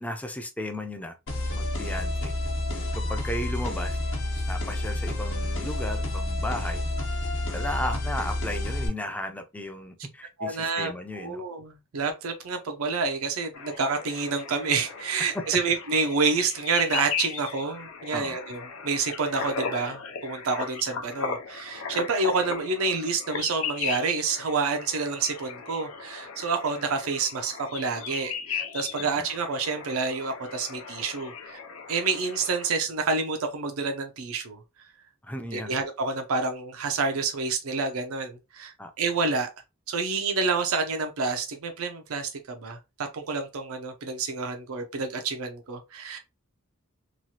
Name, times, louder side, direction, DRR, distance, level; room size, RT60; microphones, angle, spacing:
voice 1, 0.0-1.1 1.5-2.3 3.1-4.0 4.5-6.8 7.5-11.4 15.3-15.4 18.1-18.4 29.0-29.3 35.2-35.7 38.8-38.9, left 1 dB, 5° left, 0.4 m, -35 dB
sound 1, 1.3-8.9, left 1 dB, 65° left, 0.9 m, -29 dB
voice 2, 10.4-31.6 31.9-34.6 35.5-39.5 39.9-46.2, right 4 dB, 85° right, 0.5 m, -28 dB
sound 2, 13.5-32.7, left 6 dB, 80° left, 0.5 m, -37 dB
3.0 x 2.3 x 2.7 m
head